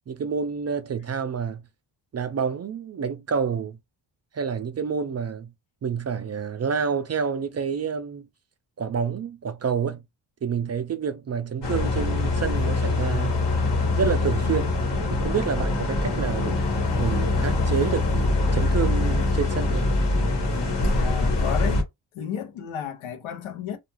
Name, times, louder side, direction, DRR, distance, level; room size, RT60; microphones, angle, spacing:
voice 1, 0.1-1.6 2.1-3.8 4.3-5.5 5.8-8.3 8.8-10.0 10.4-13.4 14.0-14.7 15.1-16.6 17.0-19.9, right 6 dB, 35° right, 0.4 m, -28 dB
sound 1, 11.6-21.8, left 2 dB, 60° left, 1.3 m, -24 dB
voice 2, 20.9-21.8 22.1-23.8, left 8 dB, 75° left, 0.8 m, -32 dB
2.3 x 2.3 x 3.0 m
cardioid pair, 75°, 48 cm